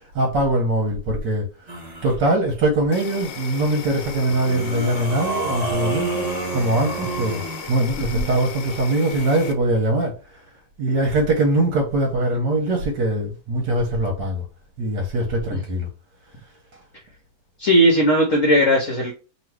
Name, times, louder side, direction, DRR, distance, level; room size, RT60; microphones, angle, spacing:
voice 1, 0.0-1.7 2.0-6.3 6.5-7.4 7.7-10.1 10.8-14.4 14.8-15.9, right 1 dB, 75° right, 1.4 m, -22 dB
sound 1, 1.7-2.2 4.3-7.7, right 3 dB, 30° right, 0.7 m, -28 dB
Insect, 2.9-9.5, left 7 dB, 90° left, 1.3 m, -36 dB
voice 2, 17.6-19.1, equal, 55° left, 1.0 m, -18 dB
3.1 x 2.8 x 4.5 m
omnidirectional pair, 1.9 m